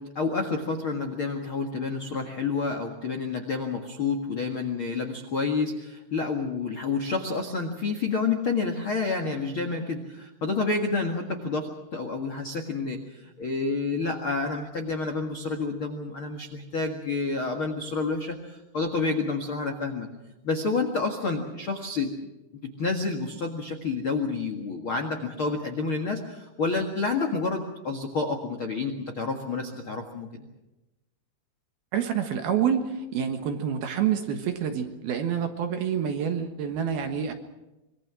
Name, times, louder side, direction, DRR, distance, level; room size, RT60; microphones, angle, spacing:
voice 1, 0.0-20.1 20.4-22.2 22.6-30.5, left 4 dB, 60° left, 3 dB, 1.3 m, -29 dB
voice 2, 31.9-37.3, right 8 dB, 65° right, 6 dB, 3.0 m, -27 dB
25.5 x 22.5 x 6.2 m, 0.98 s
omnidirectional pair, 5.4 m